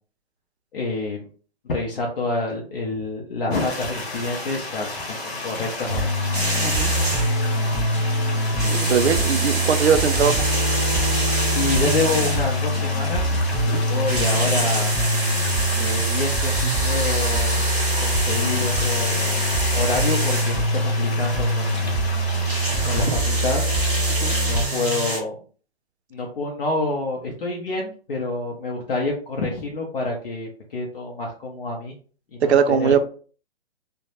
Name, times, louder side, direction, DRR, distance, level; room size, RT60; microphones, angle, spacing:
voice 1, 0.7-1.3 1.6-6.1 11.6-15.0 15.8-17.7 18.0-19.3 19.7-21.9 22.8-23.6 24.3-25.4 26.1-31.9 32.3-32.9, left 2 dB, 60° left, -1 dB, 0.6 m, -27 dB
sound 1, 3.5-23.1, left 2 dB, 80° left, 1.0 m, -33 dB
sound 2, 5.9-24.7, right 1 dB, ahead, 1.0 m, -24 dB
sound 3, 6.3-7.4 8.5-12.6 13.9-20.6 22.3-25.2, right 1 dB, 20° right, 0.7 m, -27 dB
voice 2, 8.6-10.4 24.2-24.4 32.4-33.0, right 7 dB, 90° right, 8 dB, 0.5 m, -20 dB
2.2 x 2.0 x 2.8 m, 0.41 s
hypercardioid pair, 180°, 32 cm